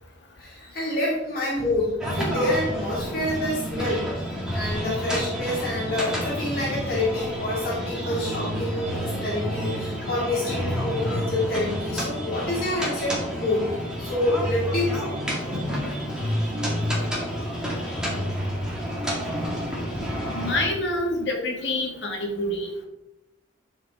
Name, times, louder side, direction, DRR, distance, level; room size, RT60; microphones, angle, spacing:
voice 1, 0.4-4.1 4.5-15.2, left 1 dB, 50° left, -5 dB, 2.3 m, -27 dB
sound 1, 2.0-20.7, equal, 5° right, 2.1 m, -29 dB
voice 2, 20.3-22.9, left 1 dB, 65° left, 1 dB, 1.9 m, -27 dB
11.5 x 5.0 x 3.6 m, 0.90 s
head